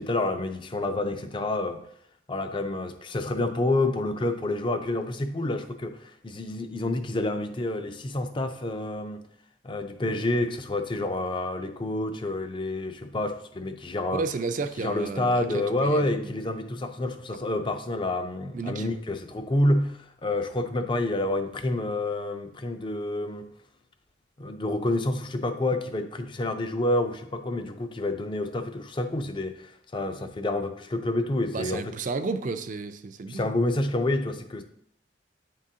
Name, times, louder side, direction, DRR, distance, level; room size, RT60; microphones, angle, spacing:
voice 1, 0.0-1.8 2.3-9.3 9.6-14.2 14.8-23.5 24.4-31.9 33.3-34.6, left 1 dB, 25° left, 0.4 m, -28 dB
voice 2, 14.1-16.3 18.5-18.9 31.5-33.5, right 4 dB, 40° right, 0.4 m, -32 dB
9.2 x 3.7 x 2.7 m
head